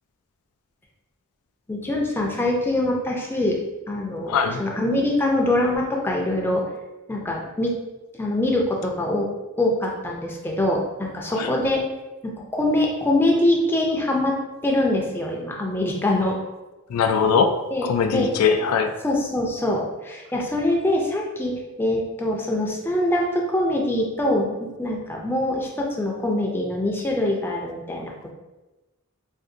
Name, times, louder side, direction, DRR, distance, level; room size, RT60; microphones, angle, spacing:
voice 1, 1.7-3.6 3.9-6.6 7.1-7.7 8.2-9.3 9.6-11.8 12.2-14.3 14.6-16.4 17.7-18.3 19.0-28.1, left 1 dB, 10° left, -1 dB, 0.4 m, -24 dB
voice 2, 4.3-4.6 11.4-11.5 16.9-17.5 17.8-18.9, left 6 dB, 85° left, 8 dB, 0.3 m, -21 dB
2.6 x 2.4 x 3.7 m, 1.1 s
head